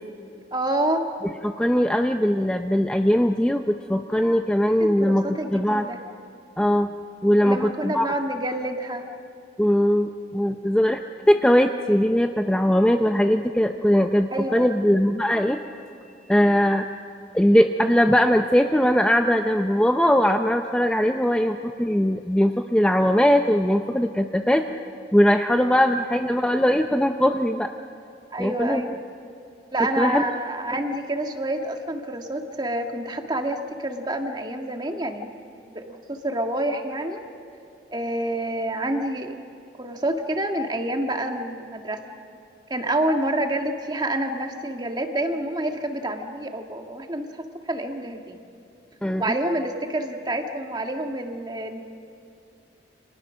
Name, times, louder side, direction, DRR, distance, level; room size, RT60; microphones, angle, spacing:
voice 1, 0.5-1.0 4.8-6.0 7.4-9.1 14.3-14.7 28.3-28.9 29.7-35.3 35.7-37.2 37.9-39.3 39.8-42.0 42.7-48.4 49.2-51.8, right 1 dB, 25° right, 4 dB, 1.8 m, -28 dB
voice 2, 1.4-5.9 6.6-6.9 7.2-8.1 9.6-11.0 11.3-15.6 16.3-16.9 17.3-24.6 25.1-27.7 28.4-28.8 30.0-30.2 49.0-49.3, equal, 5° left, 5 dB, 0.6 m, -20 dB
29.5 x 27.0 x 6.4 m, 2.5 s
head